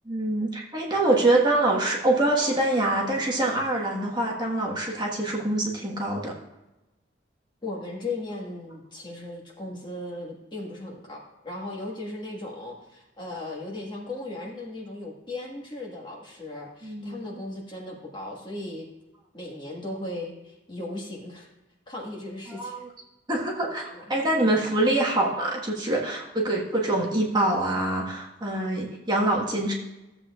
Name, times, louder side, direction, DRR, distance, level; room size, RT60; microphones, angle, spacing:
voice 1, 0.0-6.3 16.8-17.2 22.5-22.8 23.3-29.7, right 1 dB, 25° right, -2 dB, 1.4 m, -25 dB
voice 2, 7.6-18.9 19.3-21.5 21.9-22.8 24.0-24.1, left 2 dB, 25° left, -2 dB, 1.6 m, -37 dB
15.0 x 7.7 x 2.4 m, 1.0 s
head